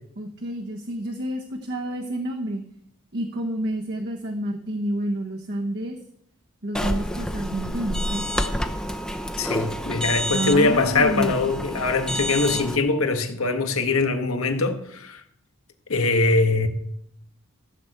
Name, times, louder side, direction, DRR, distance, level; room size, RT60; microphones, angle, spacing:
voice 1, 0.2-2.6 3.1-6.0 6.6-8.5 10.3-11.4, right 1 dB, 55° right, 1.2 m, -29 dB
sound 1, 6.7-12.8, equal, 5° left, 0.8 m, -28 dB
voice 2, 9.4-15.2 15.9-16.7, left 3 dB, 90° left, 1.5 m, -22 dB
15.0 x 6.1 x 7.9 m
head